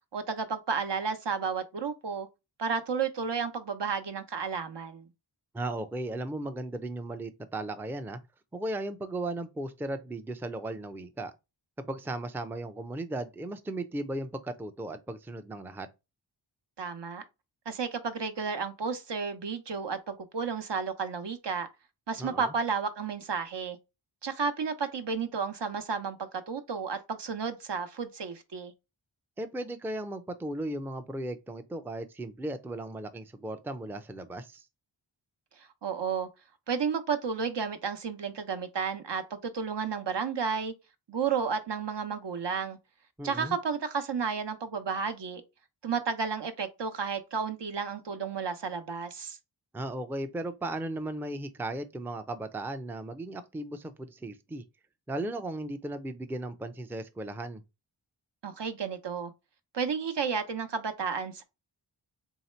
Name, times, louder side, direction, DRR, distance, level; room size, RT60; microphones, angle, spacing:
voice 1, 0.1-2.3 2.6-5.1 16.8-17.2 17.7-21.7 22.1-23.8 24.2-28.7 35.6-36.3 36.7-40.7 41.1-42.8 43.2-45.4 45.8-49.4 58.4-59.3 59.7-61.4, right 6 dB, 60° right, 0.8 m, -32 dB
voice 2, 5.5-8.2 8.5-11.3 11.8-15.9 22.2-22.5 29.4-34.7 43.2-43.6 49.7-54.6 55.1-57.6, right 1 dB, 5° right, 0.5 m, -36 dB
3.2 x 2.8 x 4.3 m
cardioid pair, 50°, 46 cm